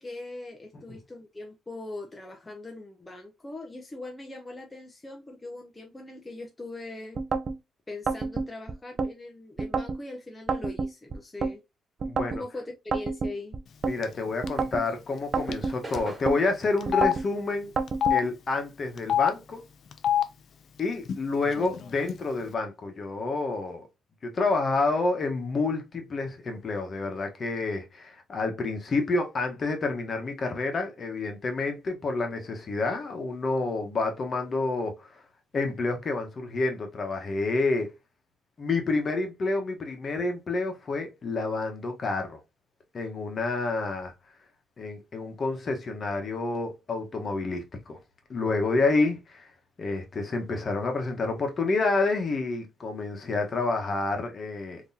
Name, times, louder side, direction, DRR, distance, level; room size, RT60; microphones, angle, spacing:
voice 1, 0.0-7.2 7.9-11.6 12.3-13.6, left 2 dB, 20° left, 0.7 m, -41 dB
sound 1, 7.2-7.6 8.1-9.1 9.6-10.0 10.5-11.5 12.0-12.4 12.9-14.0 14.4-14.9 15.3-16.4 16.9-17.3 17.8-18.2, right 4 dB, 45° right, 0.5 m, -29 dB
voice 2, 12.0-12.4 13.9-17.7 18.1-19.6 20.8-23.9 24.2-35.2 35.5-37.9 38.6-42.4 42.9-44.1 44.8-48.0 48.3-49.5 49.8-54.8, left 3 dB, 45° left, 1.1 m, -29 dB
Telephone, 14.0-14.2 14.5-14.6 15.5-15.7 15.9-16.0 16.8-17.1 17.9-18.2 19.0-19.3 19.9-20.2 21.1-21.2 21.4-22.1, left 10 dB, 60° left, 0.4 m, -25 dB
sound 2, 14.4-19.1 19.4-21.4, right 2 dB, 25° right, 2.1 m, -47 dB
3.6 x 2.9 x 2.7 m
cardioid pair, 90°, 0 cm